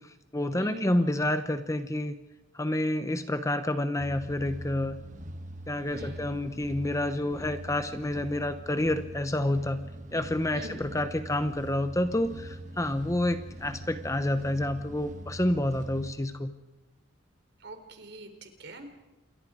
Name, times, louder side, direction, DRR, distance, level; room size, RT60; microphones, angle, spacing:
voice 1, 0.0-2.1 2.5-5.0 5.7-9.8 10.1-16.5, left 1 dB, 15° left, 10 dB, 0.9 m, -29 dB
voice 2, 0.5-1.1 5.9-6.3 10.5-10.8 17.6-18.9, right 1 dB, 55° right, 7 dB, 3.6 m, -43 dB
sound 1, 4.0-16.1, right 1 dB, 35° right, 1.2 m, -43 dB
28.0 x 22.5 x 5.0 m, 1.1 s
head